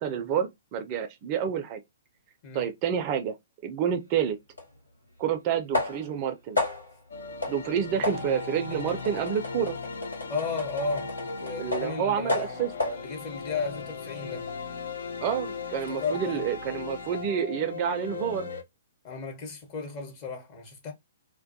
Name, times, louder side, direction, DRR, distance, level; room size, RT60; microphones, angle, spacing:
voice 1, 0.0-1.8 2.5-3.4 3.6-4.4 5.2-6.6 7.5-9.8 11.6-12.7 15.2-18.5, right 8 dB, 35° right, 0.4 m, -29 dB
sound 1, 4.6-4.7 5.7-6.2 6.6-7.0 7.4-7.6 8.0-12.0 12.3-13.0, left 2 dB, 85° left, 1.0 m, -32 dB
sound 2, 7.1-18.6, left 4 dB, 65° left, 0.5 m, -38 dB
voice 2, 10.3-14.5 15.9-16.5 19.0-20.9, left 4 dB, 35° left, 0.8 m, -34 dB
2.2 x 2.1 x 2.6 m
figure-of-eight pair, 120°, 0 cm